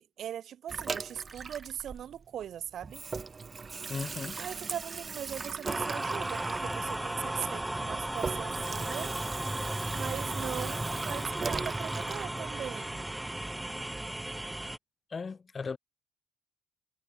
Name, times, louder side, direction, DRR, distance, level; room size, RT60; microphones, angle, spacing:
voice 1, 0.0-3.0 4.4-9.2 9.9-13.1, right 10 dB, 55° right, 2.5 m, -40 dB
Water tap faucet / Sink (filling or washing), 0.7-2.5 2.8-12.3, right 4 dB, 30° right, 2.1 m, -39 dB
voice 2, 3.9-4.4 15.1-15.8, left 5 dB, 30° left, 1.6 m, -36 dB
sound 1, 5.6-14.8, right 1 dB, 10° right, 3.6 m, -35 dB
supercardioid pair, 75°, 0 cm